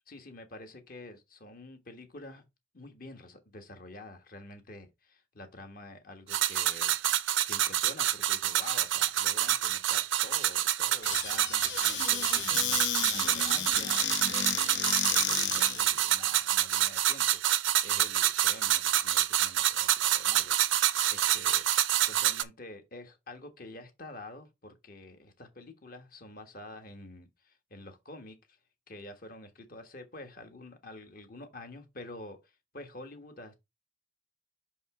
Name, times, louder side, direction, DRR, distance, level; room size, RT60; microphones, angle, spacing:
voice 1, 0.1-2.4 2.7-6.9 7.5-21.7 22.1-28.6 28.9-33.6, left 2 dB, 45° left, 1.4 m, -48 dB
sound 1, 6.3-22.4, right 12 dB, 80° right, 0.5 m, -27 dB
Squeak / Cupboard open or close, 11.0-15.9, left 9 dB, 65° left, 0.8 m, -33 dB
5.8 x 5.4 x 3.8 m
head